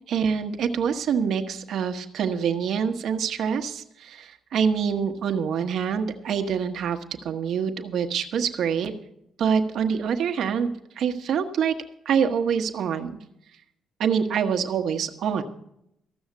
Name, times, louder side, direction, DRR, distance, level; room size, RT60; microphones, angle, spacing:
voice 1, 0.1-8.9 9.4-11.7 12.0-13.2 14.0-15.4, right 7 dB, 70° right, 5 dB, 1.1 m, -25 dB
14.0 x 6.4 x 8.2 m, 0.79 s
cardioid pair, 90°, 0 cm